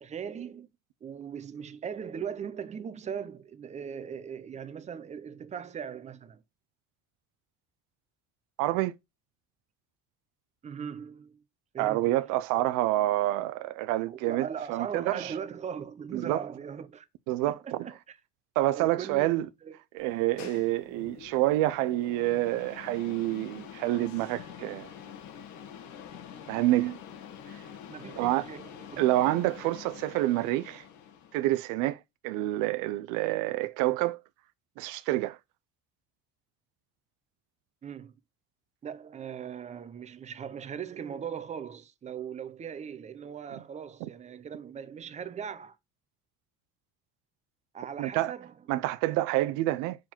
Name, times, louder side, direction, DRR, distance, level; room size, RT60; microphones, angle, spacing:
voice 1, 0.0-0.7 1.0-6.4 10.6-11.4 11.7-12.2 14.0-17.0 17.5-18.2 18.7-19.8 27.9-29.0 37.8-38.1 38.8-45.8 47.7-48.5, right 7 dB, 25° right, 0.7 m, -39 dB
voice 2, 8.6-8.9 11.8-15.3 16.1-16.4 17.3-17.9 18.6-19.5 19.9-24.9 26.5-27.0 28.2-28.5 29.0-30.8 31.3-32.0 32.2-34.2 34.8-35.4 43.5-43.6 44.0-44.1 48.0-48.3 48.7-50.0, right 16 dB, 90° right, 0.6 m, -28 dB
sound 1, 20.0-31.6, left 8 dB, 70° left, 1.7 m, -46 dB
6.0 x 4.6 x 4.4 m
cardioid pair, 145°, 30 cm